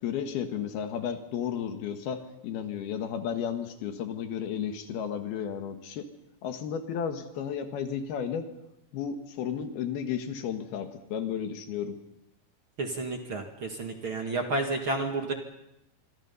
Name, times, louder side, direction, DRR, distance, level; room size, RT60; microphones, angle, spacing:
voice 1, 0.0-6.1 6.4-8.5 8.9-12.0, left 8 dB, 80° left, 7 dB, 3.6 m, -33 dB
voice 2, 12.8-15.3, right 2 dB, 40° right, 3 dB, 2.2 m, -31 dB
25.5 x 25.0 x 5.5 m, 0.86 s
omnidirectional pair, 4.4 m